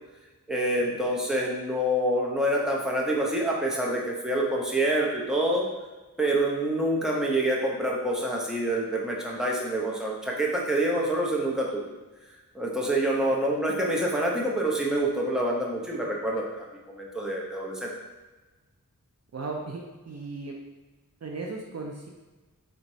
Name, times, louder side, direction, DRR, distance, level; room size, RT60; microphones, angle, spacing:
voice 1, 0.5-5.6 6.2-11.8 12.5-17.9, right 1 dB, ahead, -3 dB, 0.7 m, -27 dB
voice 2, 19.3-20.6 21.2-22.1, right 3 dB, 50° right, 0 dB, 0.5 m, -36 dB
4.3 x 3.0 x 2.7 m, 1.2 s
wide cardioid pair, 45°, 34 cm